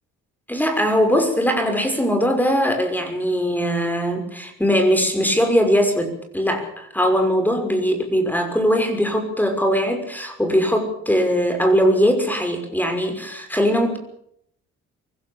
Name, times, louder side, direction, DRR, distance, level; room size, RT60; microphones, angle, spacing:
voice 1, 0.5-14.0, equal, 5° left, 6 dB, 6.0 m, -20 dB
24.0 x 16.5 x 7.2 m, 0.69 s
cardioid pair, 90°, 30 cm